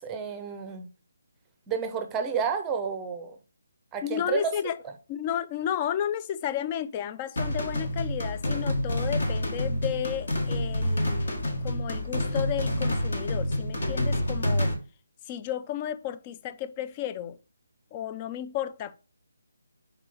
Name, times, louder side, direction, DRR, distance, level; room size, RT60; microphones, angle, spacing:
voice 1, 0.0-0.9 1.7-3.4 3.9-4.5, right 6 dB, 15° right, 0.7 m, -30 dB
voice 2, 4.0-4.8 5.1-14.7 15.3-17.4 17.9-19.0, left 10 dB, 25° left, 0.4 m, -33 dB
sound 1, 7.4-14.7, left 1 dB, 55° left, 1.6 m, -28 dB
5.9 x 4.0 x 4.2 m
figure-of-eight pair, 145°, 0 cm